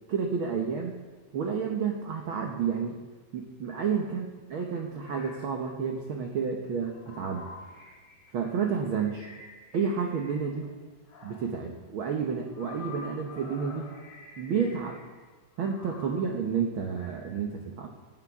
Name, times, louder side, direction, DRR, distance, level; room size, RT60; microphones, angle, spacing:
voice 1, 0.1-1.0 1.3-3.0 3.3-7.5 8.3-9.3 9.7-10.7 11.2-13.9 14.4-15.0 15.6-17.9, right 6 dB, 75° right, 2 dB, 1.2 m, -30 dB
sound 1, 5.0-5.5 6.6-10.7 11.1-11.7 12.4-15.3 15.5-16.3 16.9-17.4, left 4 dB, 70° left, 4.1 m, -49 dB
18.5 x 13.0 x 3.6 m, 1.4 s
omnidirectional pair, 3.8 m